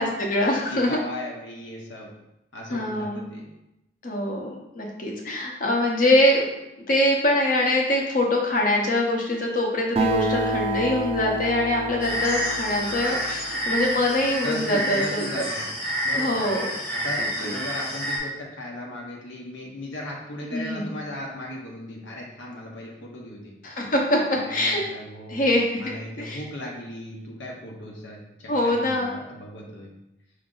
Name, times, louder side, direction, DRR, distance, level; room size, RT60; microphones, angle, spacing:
voice 1, 0.0-1.0 2.7-3.2 4.0-6.4 6.9-15.5 16.2-16.7 17.4-17.6 20.5-20.9 23.6-24.8 25.3-25.7 26.2-26.4 28.5-29.2, left 1 dB, 45° left, 0 dB, 0.8 m, -23 dB
voice 2, 0.6-2.1 2.5-3.4 14.4-15.7 16.0-16.4 16.9-23.5 24.3-25.5 25.7-29.9, left 1 dB, 80° left, -2 dB, 0.9 m, -37 dB
Acoustic guitar, 10.0-13.8, right 2 dB, 30° right, 0.4 m, -28 dB
sound 1, 12.0-18.2, equal, 20° left, 1.1 m, -29 dB
4.9 x 2.7 x 3.8 m, 0.89 s
head